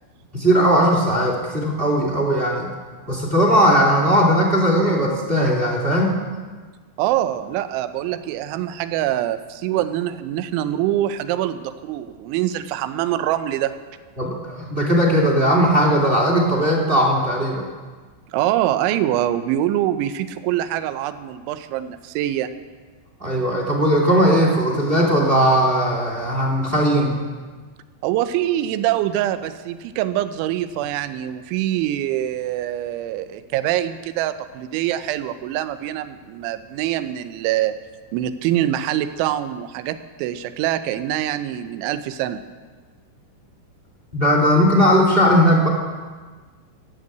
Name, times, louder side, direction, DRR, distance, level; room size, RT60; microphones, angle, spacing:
voice 1, 0.3-2.7 3.1-6.1 14.2-17.6 23.2-27.2 44.1-45.7, equal, 20° right, -1 dB, 1.7 m, -18 dB
voice 2, 7.0-13.7 18.3-22.5 28.0-37.8 38.1-42.4, right 12 dB, 85° right, 11 dB, 3.1 m, -24 dB
13.5 x 10.5 x 8.0 m, 1.4 s
omnidirectional pair, 5.4 m